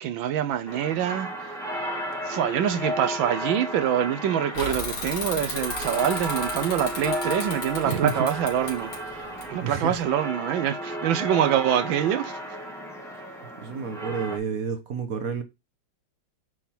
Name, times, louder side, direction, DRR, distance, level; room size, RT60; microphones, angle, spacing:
voice 1, 0.0-1.5 2.2-12.4, right 10 dB, 75° right, 1.4 m, -25 dB
sound 1, 0.7-14.4, equal, ahead, 1.5 m, -34 dB
Bicycle / Mechanisms, 4.5-10.0, left 3 dB, 65° left, 3.0 m, -35 dB
voice 2, 9.6-10.0 13.6-15.4, right 5 dB, 55° right, 1.2 m, -29 dB
9.1 x 3.8 x 4.4 m
omnidirectional pair, 2.2 m